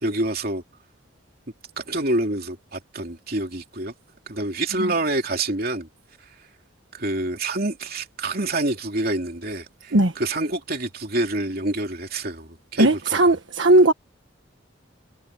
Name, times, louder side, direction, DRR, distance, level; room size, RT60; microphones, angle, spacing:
voice 1, 0.0-0.6 1.8-3.9 4.3-5.9 6.9-13.2, right 2 dB, 50° right, 2.9 m, -27 dB
voice 2, 12.8-13.9, right 1 dB, 75° right, 1.4 m, -17 dB
head